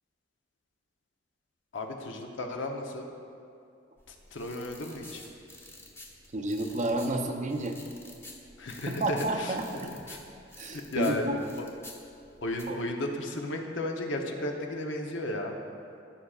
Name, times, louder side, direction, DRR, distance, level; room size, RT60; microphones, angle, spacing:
voice 1, 1.7-3.1 4.1-5.2 8.6-9.5 10.1-10.2 10.9-11.2 12.4-15.6, left 2 dB, 85° left, 3 dB, 0.8 m, -34 dB
sound 1, 4.0-12.6, left 2 dB, 15° left, 0.9 m, -50 dB
voice 2, 6.3-7.8 8.9-9.9 10.6-11.4 12.7-12.8, right 2 dB, 40° right, 4 dB, 0.6 m, -31 dB
14.5 x 5.7 x 2.4 m, 2.5 s
head